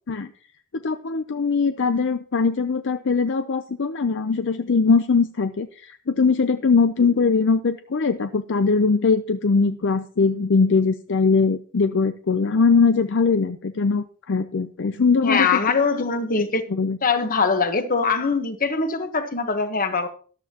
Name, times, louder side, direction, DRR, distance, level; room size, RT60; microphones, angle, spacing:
voice 1, 0.7-15.9 16.3-16.4 16.7-17.0, left 4 dB, 55° left, 10 dB, 0.6 m, -21 dB
voice 2, 15.2-16.6 17.0-20.1, left 4 dB, 40° left, 9 dB, 1.2 m, -22 dB
13.5 x 12.0 x 2.9 m, 0.43 s
head